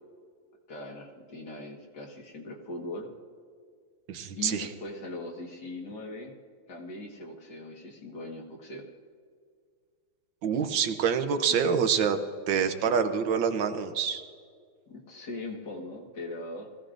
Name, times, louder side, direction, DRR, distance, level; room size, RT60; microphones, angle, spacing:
voice 1, 0.7-3.1 4.4-6.3 6.7-8.9 11.5-12.0 12.8-13.0 14.9-16.7, left 2 dB, 55° left, 0 dB, 2.1 m, -40 dB
voice 2, 4.1-4.7 10.4-12.2 12.5-14.2, right 7 dB, 65° right, 7 dB, 1.5 m, -26 dB
20.5 x 15.5 x 2.6 m, 2.1 s
omnidirectional pair, 2.3 m